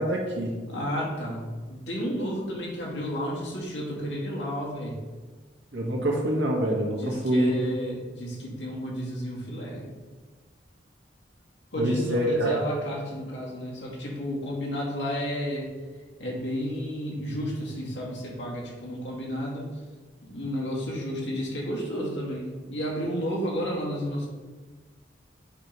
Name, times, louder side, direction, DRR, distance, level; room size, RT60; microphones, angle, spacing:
voice 1, 0.0-0.5 5.7-7.5 11.8-12.5, right 1 dB, 80° right, -2 dB, 1.7 m, -25 dB
voice 2, 0.7-1.4 1.7-5.0 6.8-9.9 11.7-15.7 16.2-19.8 20.3-24.3, equal, 75° left, -4 dB, 2.2 m, -32 dB
7.9 x 3.2 x 5.4 m, 1.3 s
head